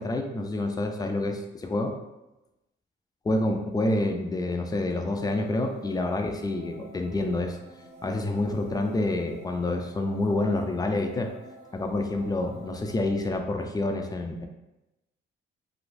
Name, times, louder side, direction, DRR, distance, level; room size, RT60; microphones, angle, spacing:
voice 1, 0.0-2.0 3.2-7.6 8.0-11.3 11.7-14.5, left 2 dB, 20° left, 4 dB, 0.4 m, -28 dB
sound 1, 5.1-13.1, right 1 dB, 55° right, 1.5 m, -50 dB
3.1 x 2.5 x 2.6 m, 0.97 s
cardioid pair, 90°, 20 cm